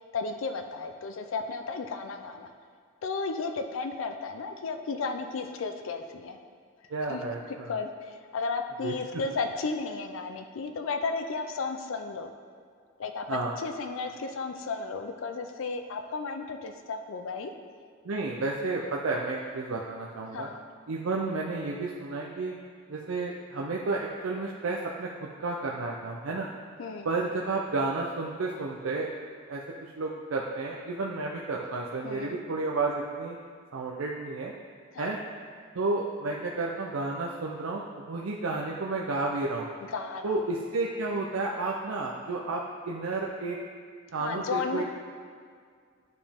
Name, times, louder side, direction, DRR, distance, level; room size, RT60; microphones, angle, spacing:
voice 1, 0.1-2.5 3.0-6.4 7.1-12.3 13.0-17.5 20.3-20.6 26.8-27.1 32.0-32.4 34.9-35.2 39.9-40.4 44.2-44.8, left 4 dB, 70° left, 6 dB, 0.4 m, -34 dB
voice 2, 6.9-7.7 8.8-8.9 13.3-13.5 18.0-20.5 20.9-22.5 22.9-26.5 27.0-29.1 29.5-33.4 33.7-34.5 35.0-35.2 35.7-39.7 40.2-43.6 44.1-44.8, right 3 dB, 80° right, -2 dB, 0.5 m, -31 dB
9.5 x 5.0 x 3.5 m, 2.1 s
head